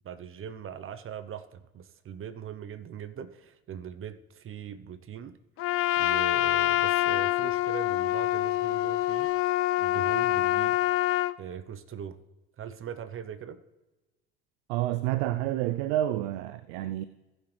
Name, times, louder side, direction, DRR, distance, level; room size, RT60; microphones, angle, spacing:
voice 1, 0.0-5.4 6.0-9.5 9.8-10.8 11.4-12.2 12.6-13.6, right 8 dB, 40° right, 0.8 m, -41 dB
Trumpet, 5.6-11.4, left 15 dB, 45° left, 0.4 m, -26 dB
voice 2, 14.7-17.0, right 14 dB, 75° right, 0.5 m, -29 dB
18.5 x 6.3 x 3.2 m
hypercardioid pair, 75°, 33 cm